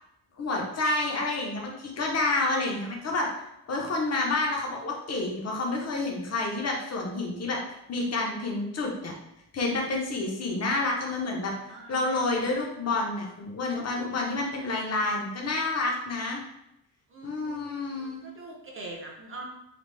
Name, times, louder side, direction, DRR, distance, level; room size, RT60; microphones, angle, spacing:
voice 1, 0.4-3.3 3.7-7.6 7.9-9.1 9.5-11.5 11.9-16.4 17.2-18.2, left 2 dB, 35° left, -1 dB, 0.9 m, -29 dB
voice 2, 11.7-12.6 17.1-17.9 18.2-19.4, right 2 dB, 30° right, -1 dB, 0.9 m, -43 dB
5.0 x 2.4 x 3.3 m, 0.82 s
wide cardioid pair, 160°, 42 cm